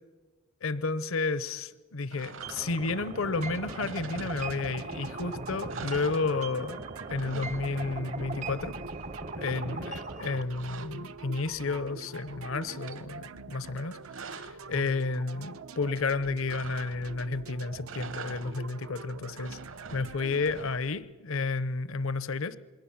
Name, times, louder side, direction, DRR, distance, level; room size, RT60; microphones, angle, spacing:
voice 1, 0.6-8.8 9.3-19.6 19.9-22.6, left 3 dB, 70° left, 16 dB, 0.8 m, -32 dB
sound 1, 2.1-3.0 3.7-5.0 5.3-5.4 5.7-6.8 7.0-8.3 10.0-11.8 12.2-13.1 13.8-14.7 16.5-17.3 17.8-18.8 19.2-21.0, right 5 dB, 65° right, 1.4 m, -46 dB
sound 2, 2.4-10.4, right 3 dB, 35° right, 0.7 m, -39 dB
sound 3, 3.3-20.5, right 3 dB, 85° right, 0.9 m, -45 dB
27.5 x 22.0 x 7.3 m, 1.4 s
head